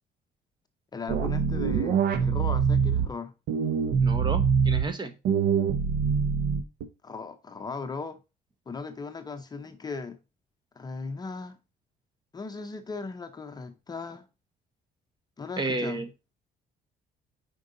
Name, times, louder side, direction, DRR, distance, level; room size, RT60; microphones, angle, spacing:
voice 1, 0.9-3.3 7.0-8.2 8.7-10.2 10.8-11.6 12.3-14.3 15.4-16.0, left 4 dB, 25° left, 0.7 m, -37 dB
sound 1, 1.1-3.1 3.5-4.8 5.2-6.8, right 6 dB, 75° right, 0.9 m, -24 dB
voice 2, 4.0-5.1 15.6-16.1, right 3 dB, 25° right, 0.9 m, -31 dB
5.3 x 5.3 x 3.8 m
cardioid pair, 110°, 17 cm